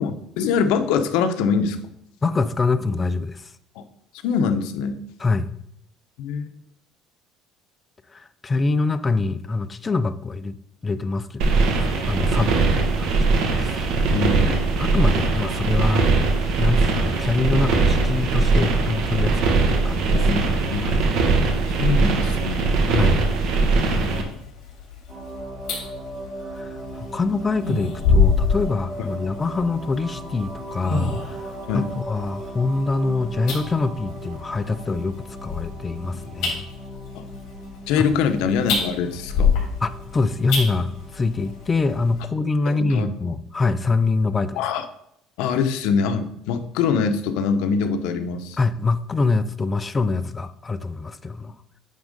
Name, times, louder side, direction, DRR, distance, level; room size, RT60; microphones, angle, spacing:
voice 1, 0.0-1.8 3.8-3.9 4.2-5.0 6.2-6.5 14.1-14.6 20.1-21.4 21.8-22.8 23.8-24.3 31.7-31.9 37.1-37.2 37.9-39.6 42.8-43.1 44.6-44.9 45.4-48.6, left 6 dB, 80° left, 8 dB, 0.8 m, -24 dB
voice 2, 2.2-3.5 5.2-5.5 8.1-10.6 10.8-14.0 14.5-16.1 16.6-20.2 20.5-21.0 22.9-23.2 26.5-36.6 38.0-38.1 39.8-44.6 48.6-51.5, left 3 dB, 15° left, 11 dB, 0.3 m, -25 dB
sound 1, 11.4-24.2, right 3 dB, 55° right, 1.2 m, -20 dB
sound 2, 23.9-42.2, left 5 dB, 60° left, 3.3 m, -28 dB
sound 3, 25.1-41.9, right 1 dB, 20° right, 1.3 m, -38 dB
9.2 x 3.6 x 5.1 m, 0.75 s
cardioid pair, 170°, 0 cm